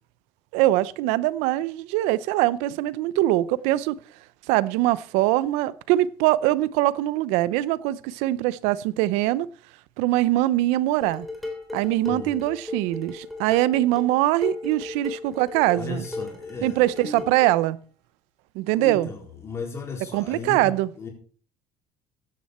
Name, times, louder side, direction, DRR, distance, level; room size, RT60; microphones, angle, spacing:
voice 1, 0.5-4.0 4.5-9.5 10.0-11.3 11.7-16.0 16.6-17.8 18.5-19.1 20.1-20.9, right 16 dB, 90° right, 0.7 m, -22 dB
Dishes pots and pans, 11.0-17.6, left 3 dB, ahead, 3.4 m, -36 dB
voice 2, 12.1-12.4 15.8-17.3 18.7-21.1, left 3 dB, 25° left, 4.3 m, -36 dB
15.5 x 10.5 x 4.3 m
cardioid pair, 165°, 11 cm